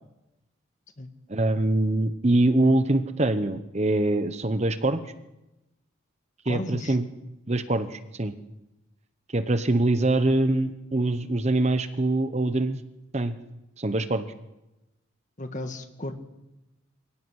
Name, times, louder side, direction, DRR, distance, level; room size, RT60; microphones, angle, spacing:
voice 1, 1.3-5.0 6.4-7.1 7.5-8.3 9.3-12.8 13.1-13.4 13.8-14.3, right 2 dB, 35° right, 10 dB, 1.0 m, -24 dB
voice 2, 6.5-7.0 15.4-16.1, left 1 dB, 40° left, 7 dB, 1.7 m, -34 dB
23.5 x 17.0 x 6.4 m, 0.95 s
head